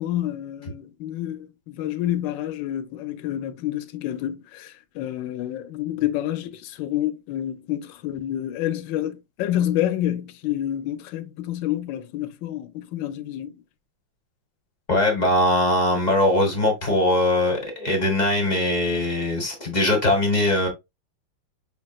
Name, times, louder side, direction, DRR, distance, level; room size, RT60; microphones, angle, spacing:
voice 1, 0.0-13.5, left 12 dB, 70° left, 1.2 m, -28 dB
voice 2, 14.9-20.7, left 1 dB, 30° left, 0.9 m, -21 dB
5.2 x 3.5 x 2.3 m
omnidirectional pair, 2.3 m